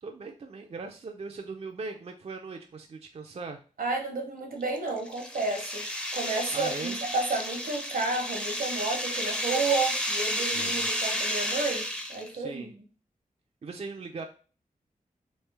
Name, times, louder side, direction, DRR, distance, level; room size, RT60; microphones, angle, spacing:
voice 1, 0.0-3.6 6.5-7.0 10.5-10.9 12.3-12.7 13.6-14.2, right 4 dB, 45° right, 3 dB, 0.4 m, -39 dB
voice 2, 3.8-12.8, right 3 dB, 80° right, 3 dB, 0.9 m, -31 dB
sound 1, 4.6-12.3, equal, 5° left, 0.6 m, -32 dB
3.2 x 2.8 x 3.3 m, 0.37 s
wide cardioid pair, 75°, 15 cm